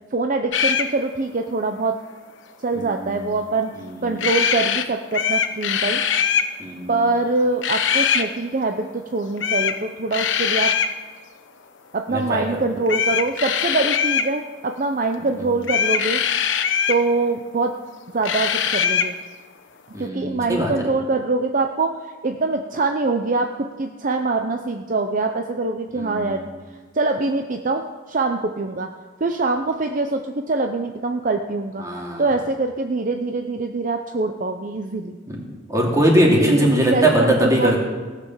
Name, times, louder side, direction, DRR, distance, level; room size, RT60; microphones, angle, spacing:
voice 1, 0.1-2.0 2.6-3.7 4.0-6.0 6.9-10.7 11.9-16.2 16.9-17.8 18.1-19.1 20.0-22.0 22.2-26.4 26.9-28.9 29.2-31.8 32.2-35.2 36.4-37.8, right 3 dB, 45° right, 5 dB, 0.6 m, -24 dB
sound 1, 0.5-0.9 4.2-4.8 5.1-6.5 7.6-8.3 9.4-9.8 10.1-10.9 12.9-14.3 15.6-17.0 18.2-19.1, left 7 dB, 80° left, 0.9 m, -21 dB
voice 2, 2.7-3.3 3.8-4.3 6.6-7.1 12.1-12.5 15.4-15.5 19.9-20.7 25.9-26.4 31.8-32.2 35.3-35.4 35.7-37.8, right 1 dB, 15° right, -1 dB, 2.6 m, -21 dB
17.0 x 6.8 x 7.3 m, 1.4 s
head